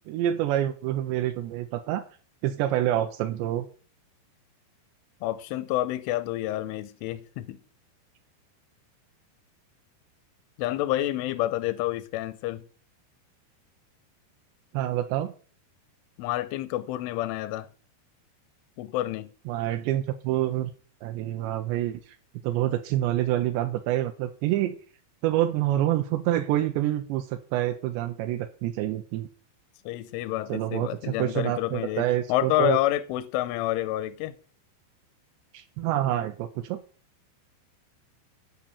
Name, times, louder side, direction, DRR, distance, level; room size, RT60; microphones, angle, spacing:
voice 1, 0.1-2.0 2.4-3.7 14.7-15.3 19.5-20.7 21.0-22.1 22.4-24.8 25.2-29.3 30.5-32.8 35.5-36.8, right 13 dB, 85° right, 2.6 m, -27 dB
voice 2, 5.2-7.6 10.6-12.6 16.2-17.7 18.8-19.3 29.9-34.3, left 15 dB, 85° left, 3.1 m, -29 dB
8.7 x 5.2 x 7.0 m
omnidirectional pair, 5.5 m